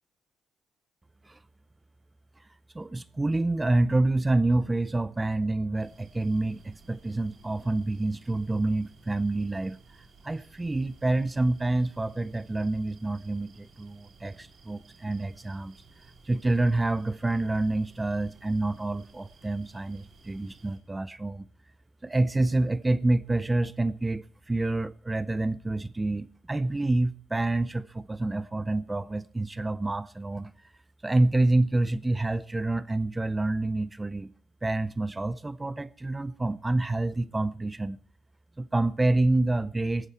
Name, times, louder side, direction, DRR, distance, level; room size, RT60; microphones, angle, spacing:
voice 1, 2.7-9.8 10.2-15.8 16.3-21.5 22.0-30.5 31.0-34.3 34.6-38.0 38.6-40.1, right 2 dB, 15° right, 0.6 m, -27 dB
sound 1, 5.8-20.8, right 4 dB, 50° right, 4.4 m, -57 dB
18.5 x 14.0 x 4.4 m
cardioid pair, 90°, 0 cm